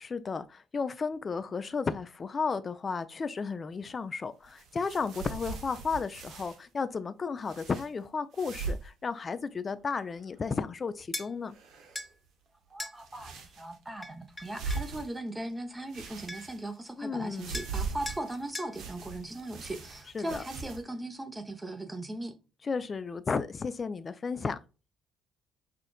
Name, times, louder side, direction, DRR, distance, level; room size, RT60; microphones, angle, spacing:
voice 1, 0.0-11.6 17.0-17.6 20.1-20.4 22.7-24.6, left 5 dB, 40° left, 0.4 m, -33 dB
sound 1, 4.4-6.6 7.4-7.9 8.3-8.9 9.2-9.3 9.8-10.4 11.5-12.1 13.0-13.8 14.4-15.5 15.9-16.9 17.3-20.8, right 4 dB, 65° right, 0.8 m, -40 dB
sound 2, 11.1-11.3 12.0-12.1 12.8-13.0 14.0-14.9 15.9-16.0 16.3-16.6 17.5-17.8 18.1-18.2 18.6-18.7, left 2 dB, 20° left, 0.8 m, -39 dB
voice 2, 12.7-22.3, right 1 dB, 15° right, 0.9 m, -39 dB
5.8 x 2.5 x 2.2 m
hypercardioid pair, 50°, 0 cm